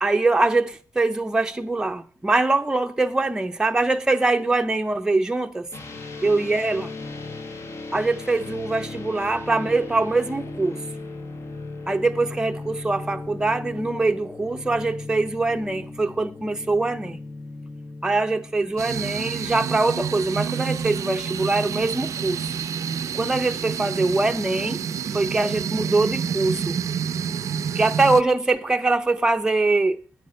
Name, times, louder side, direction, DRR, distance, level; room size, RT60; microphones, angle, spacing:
voice 1, 0.0-5.7 6.2-6.9 7.9-10.8 11.9-17.2 18.0-22.4 23.1-24.8 25.1-26.8 27.7-30.0, right 3 dB, 10° right, 0.6 m, -23 dB
sound 1, 5.7-19.9, left 3 dB, 45° left, 1.3 m, -37 dB
sound 2, 18.8-28.2, right 7 dB, 60° right, 0.5 m, -28 dB
9.2 x 9.1 x 6.4 m
wide cardioid pair, 130°, 6 cm